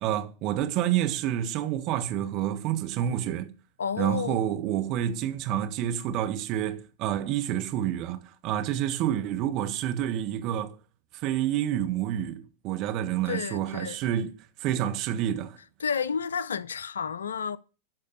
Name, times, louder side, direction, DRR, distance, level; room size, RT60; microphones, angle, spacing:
voice 1, 0.0-3.5 4.0-10.7 11.2-14.3 14.6-15.6, right 11 dB, 45° right, 1.4 m, -28 dB
voice 2, 3.8-4.5 13.3-14.0 15.8-17.6, left 6 dB, 75° left, 0.5 m, -31 dB
12.0 x 4.3 x 6.6 m
figure-of-eight pair, 95°, 0 cm